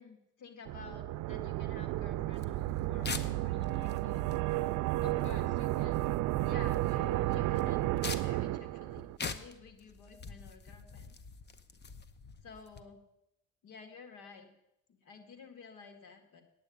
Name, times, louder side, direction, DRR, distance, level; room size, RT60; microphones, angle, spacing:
voice 1, 0.0-4.3 5.0-6.1 6.4-11.2 12.4-13.0 13.6-14.5 14.9-16.4, left 5 dB, 85° left, 6 dB, 1.9 m, -52 dB
sound 1, 0.6-9.2, right 16 dB, 85° right, 0.5 m, -32 dB
sound 2, 2.4-12.8, left 5 dB, 35° left, 0.9 m, -46 dB
9.1 x 8.6 x 8.3 m, 0.86 s
cardioid pair, 90°, 30 cm